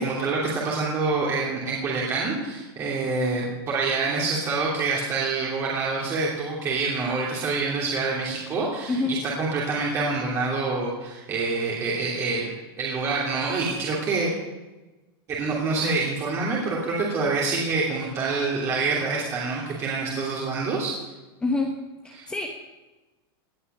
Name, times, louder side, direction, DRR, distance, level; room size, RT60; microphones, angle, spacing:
voice 1, 0.0-14.3 15.3-20.9 22.2-22.3, right 3 dB, 20° right, -4 dB, 3.0 m, -26 dB
voice 2, 8.9-9.2 21.4-21.8 22.0-22.5, left 3 dB, 10° left, 1 dB, 1.1 m, -26 dB
18.5 x 11.5 x 6.8 m, 1.1 s
supercardioid pair, 170°, 13 cm